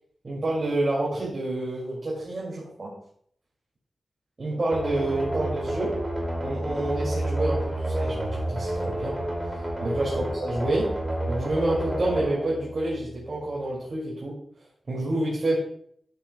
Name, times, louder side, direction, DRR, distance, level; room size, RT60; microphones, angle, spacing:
voice 1, 0.2-2.9 4.4-6.0 6.4-9.2 9.8-11.0 11.3-14.4 14.9-15.6, right 2 dB, 40° right, -6 dB, 2.4 m, -28 dB
sound 1, 4.7-13.4, right 1 dB, 5° right, 2.5 m, -30 dB
12.5 x 7.6 x 2.3 m, 0.64 s
wide cardioid pair, 140°, 0 cm